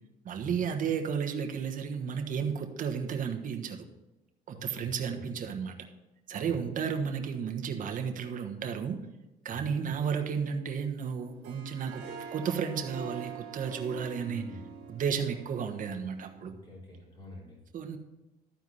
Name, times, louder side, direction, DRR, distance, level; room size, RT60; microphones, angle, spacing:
voice 1, 0.2-3.8 4.5-5.8 6.3-9.0 9.4-12.1 12.3-14.4 14.9-16.5 17.7-18.0, right 7 dB, 50° right, 5 dB, 1.3 m, -33 dB
voice 2, 4.5-5.3 6.3-6.6 9.5-9.7 14.2-14.7 16.3-17.6, left 1 dB, 25° left, -4 dB, 3.7 m, -46 dB
Harp, 11.2-16.4, right 6 dB, 85° right, 1.6 m, -45 dB
13.0 x 4.6 x 5.5 m, 0.99 s
cardioid pair, 110°, 17 cm